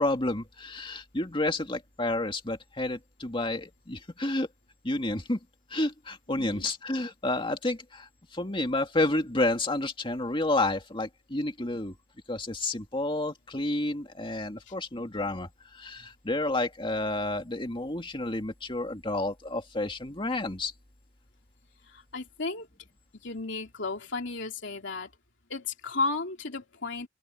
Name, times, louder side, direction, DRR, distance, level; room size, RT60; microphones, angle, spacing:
voice 1, 0.0-4.5 4.8-5.4 5.7-11.9 12.3-20.7, left 2 dB, 25° left, 2.3 m, -30 dB
voice 2, 6.4-6.7 14.7-14.8 21.8-22.7 23.2-25.1 25.5-27.1, left 3 dB, 65° left, 3.4 m, -34 dB
open air
head